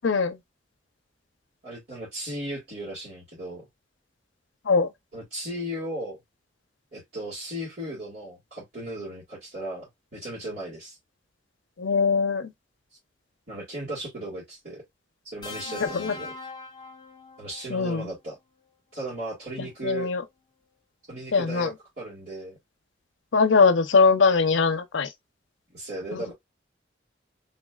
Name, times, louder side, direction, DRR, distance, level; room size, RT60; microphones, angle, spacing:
voice 1, 0.0-0.4 4.7-4.9 11.8-12.5 15.8-16.1 17.7-18.1 19.6-20.2 21.3-21.7 23.3-25.1, left 4 dB, 85° left, 0.6 m, -21 dB
voice 2, 1.6-3.6 5.1-6.2 6.9-11.0 13.5-14.8 15.3-16.3 17.4-18.4 18.9-20.1 21.1-22.6 25.7-26.3, right 1 dB, 50° right, 2.1 m, -36 dB
sound 1, 15.4-17.7 19.0-19.2, left 3 dB, 25° left, 1.0 m, -40 dB
4.2 x 3.1 x 2.4 m
head